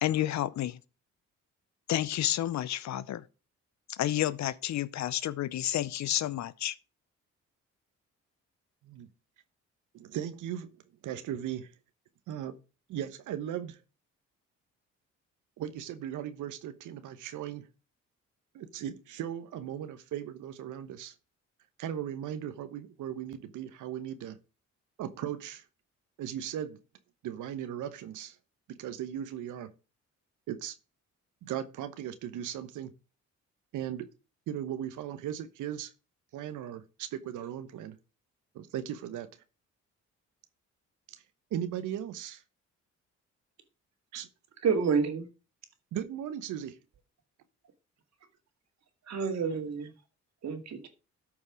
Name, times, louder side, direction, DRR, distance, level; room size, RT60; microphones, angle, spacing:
voice 1, 0.0-0.8 1.9-3.2 3.9-6.7, left 13 dB, 65° left, 0.7 m, -30 dB
voice 2, 9.9-10.7 11.0-11.7 12.3-12.6 12.9-13.8 15.6-17.7 18.5-21.1 21.8-24.4 25.0-25.6 26.2-26.8 27.2-28.4 28.7-29.7 30.5-30.8 31.4-32.9 33.7-34.1 34.5-35.9 36.3-38.0 38.5-39.3 41.1-41.2 41.5-42.4 44.1-44.3 45.9-46.8, right 10 dB, 80° right, 1.1 m, -37 dB
voice 3, 44.6-45.3 49.1-49.9 50.4-50.9, right 5 dB, 60° right, 2.2 m, -29 dB
13.5 x 5.3 x 4.9 m
cardioid pair, 90°, 30 cm